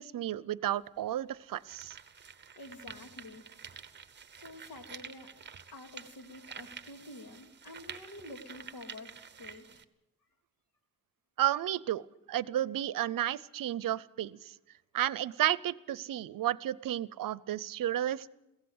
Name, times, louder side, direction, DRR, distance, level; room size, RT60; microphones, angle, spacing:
voice 1, 0.0-2.0 11.4-14.5 14.9-18.3, right 12 dB, 70° right, 20 dB, 0.7 m, -32 dB
sound 1, 0.7-0.8 1.4-9.8, right 6 dB, 30° right, 1.0 m, -49 dB
voice 2, 2.5-3.4 4.3-5.3 5.7-9.8, left 2 dB, 90° left, 6 dB, 2.9 m, -48 dB
22.5 x 16.5 x 8.0 m, 0.94 s
wide cardioid pair, 140°, 34 cm